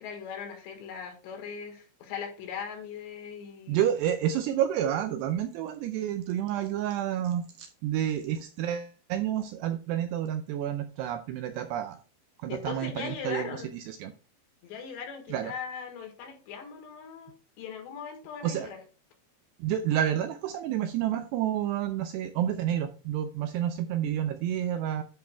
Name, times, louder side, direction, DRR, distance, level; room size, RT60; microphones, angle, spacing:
voice 1, 0.0-3.8 12.5-13.7 14.6-18.8, left 7 dB, 70° left, 4 dB, 3.8 m, -39 dB
voice 2, 3.7-12.0 12.4-14.1 15.3-15.5 18.4-18.7 19.6-25.0, right 10 dB, 80° right, 7 dB, 2.4 m, -29 dB
10.5 x 5.3 x 3.4 m, 0.35 s
omnidirectional pair, 5.3 m